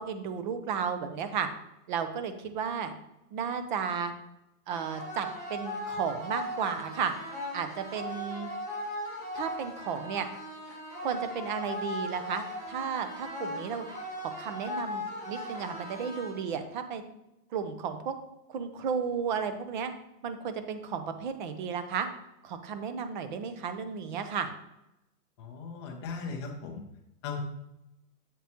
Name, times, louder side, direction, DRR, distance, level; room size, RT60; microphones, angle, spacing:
voice 1, 0.0-1.5 1.9-2.9 3.3-4.1 4.7-7.1 7.5-8.5 9.3-10.3 11.0-13.9 14.2-17.0 17.5-18.1 18.5-19.9 20.2-22.1 22.4-24.5, right 6 dB, 30° right, 8 dB, 0.6 m, -33 dB
sound 1, 4.7-16.7, left 1 dB, 15° right, 2.1 m, -38 dB
voice 2, 25.4-26.8 27.2-27.4, left 5 dB, 20° left, 2 dB, 0.5 m, -37 dB
7.5 x 7.2 x 2.9 m, 0.89 s
hypercardioid pair, 155°, 49 cm